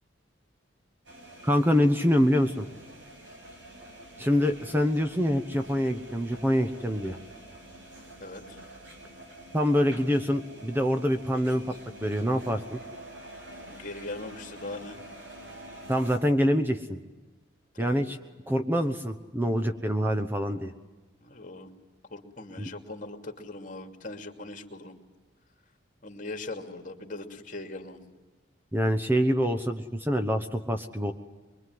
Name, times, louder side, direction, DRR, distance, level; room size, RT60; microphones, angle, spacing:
sound 1, 1.1-16.2, right 1 dB, 75° right, 6.6 m, -47 dB
voice 1, 1.4-2.7 4.2-7.2 9.5-11.7 12.0-12.8 15.9-17.0 17.8-18.2 18.5-20.7 22.6-22.7 28.7-31.1, equal, 10° right, 7 dB, 1.0 m, -25 dB
voice 2, 8.2-8.6 13.7-15.0 17.7-18.1 21.2-21.7 22.1-25.0 26.0-28.0, left 2 dB, 40° left, 5 dB, 2.6 m, -40 dB
23.5 x 23.5 x 9.5 m, 1.2 s
head